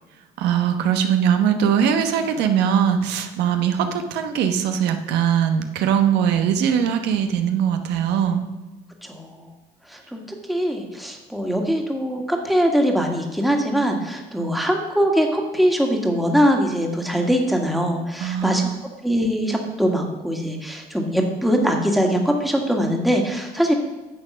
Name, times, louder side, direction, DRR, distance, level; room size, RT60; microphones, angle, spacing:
voice 1, 0.4-8.4 18.2-18.8, right 8 dB, 85° right, 6 dB, 1.0 m, -21 dB
voice 2, 9.0-9.4 9.9-10.2 10.5-18.6 19.0-23.7, equal, ahead, 2 dB, 1.8 m, -22 dB
10.0 x 6.9 x 6.2 m, 1.2 s
cardioid pair, 110°, 17 cm